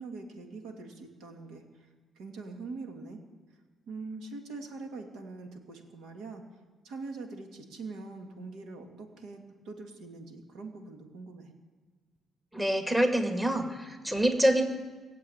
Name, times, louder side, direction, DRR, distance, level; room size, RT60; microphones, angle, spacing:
voice 1, 0.0-1.9 2.2-3.2 3.9-6.4 6.8-11.5, right 3 dB, 85° right, 4 dB, 2.2 m, -43 dB
voice 2, 12.5-14.6, right 1 dB, 10° right, 4 dB, 2.0 m, -26 dB
21.0 x 7.6 x 8.8 m, 1.4 s
cardioid pair, 90°, 0 cm